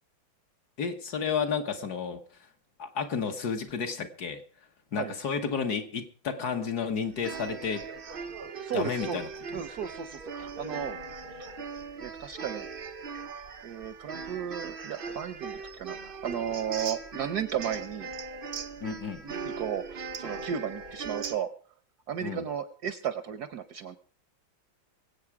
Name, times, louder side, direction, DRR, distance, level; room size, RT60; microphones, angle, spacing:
voice 1, 0.8-2.2 2.8-4.4 4.9-7.9 8.7-9.3 9.5-9.6 18.8-19.2 22.2-22.4, left 6 dB, 55° left, 1.6 m, -31 dB
sound 1, 7.1-21.4, right 5 dB, 85° right, 0.4 m, -39 dB
voice 2, 8.6-11.0 11.3-11.5 12.0-12.7 13.6-18.1 19.2-21.5 22.1-24.0, right 8 dB, 60° right, 1.1 m, -34 dB
24.0 x 8.2 x 4.7 m
omnidirectional pair, 2.3 m